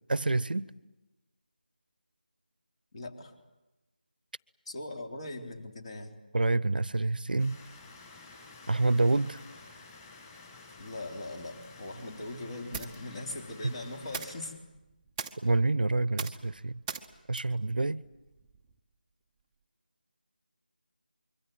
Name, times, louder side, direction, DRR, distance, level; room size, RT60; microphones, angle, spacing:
voice 1, 0.1-0.7 6.3-7.6 8.7-9.4 13.6-13.7 15.4-16.8 17.3-18.0, right 2 dB, 65° right, 0.9 m, -27 dB
voice 2, 2.9-3.3 4.7-6.2 10.8-14.5, left 2 dB, 35° left, 3.9 m, -40 dB
sound 1, 7.4-14.4, left 3 dB, 15° left, 6.9 m, -51 dB
sound 2, 12.7-18.8, right 5 dB, 10° right, 0.9 m, -44 dB
26.0 x 23.5 x 9.3 m
figure-of-eight pair, 170°, 5 cm